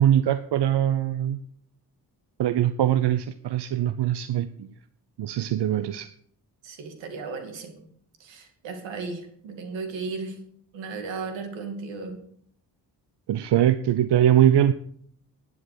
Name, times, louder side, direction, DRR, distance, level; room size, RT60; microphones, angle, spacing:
voice 1, 0.0-1.4 2.4-4.7 5.2-6.1 13.3-14.7, right 11 dB, 65° right, 13 dB, 0.8 m, -22 dB
voice 2, 6.6-7.9 8.2-10.4 10.7-12.2, right 4 dB, 85° right, 5 dB, 2.5 m, -35 dB
11.0 x 8.1 x 6.8 m, 0.63 s
supercardioid pair, 50°, 44 cm